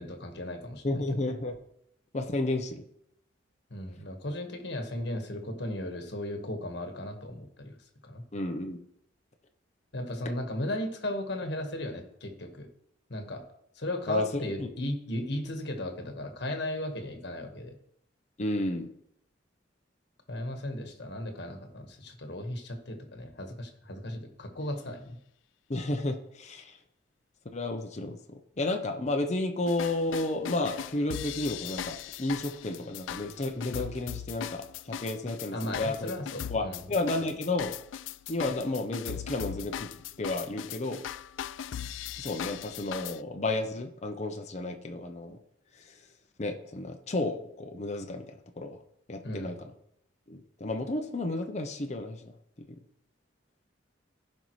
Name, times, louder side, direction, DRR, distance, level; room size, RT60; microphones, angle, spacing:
voice 1, 0.0-1.2 3.7-7.8 8.0-8.2 9.9-12.7 13.1-13.4 13.7-17.7 20.3-25.2 35.5-36.8 49.2-49.5, left 1 dB, 60° left, 4 dB, 1.4 m, -36 dB
voice 2, 0.8-1.6 2.1-2.8 8.3-8.8 14.1-14.7 18.4-18.9 25.7-26.8 27.5-36.1 36.5-37.7 38.3-39.9 40.2-41.0 42.2-45.4 45.7-46.0 46.4-48.8 49.1-49.7 50.3-52.3 52.7-52.8, left 2 dB, 35° left, 4 dB, 0.7 m, -32 dB
sound 1, 29.7-43.2, left 9 dB, 80° left, 0.3 m, -39 dB
15.0 x 5.4 x 3.1 m, 0.74 s
head